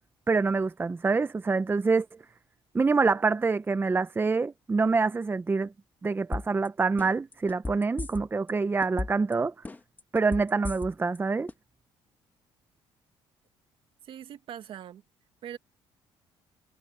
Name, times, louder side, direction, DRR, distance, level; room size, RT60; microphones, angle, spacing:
voice 1, 0.3-2.1 2.7-5.7 6.0-9.5 10.1-11.5, right 4 dB, 20° right, 0.7 m, -26 dB
sound 1, 6.3-6.7 7.0-8.5 8.8-9.3 9.6-11.2 11.5-11.6, left 3 dB, 15° left, 1.3 m, -34 dB
voice 2, 14.0-15.0 15.4-15.6, right 10 dB, 65° right, 1.8 m, -41 dB
cardioid pair, 85°, 10 cm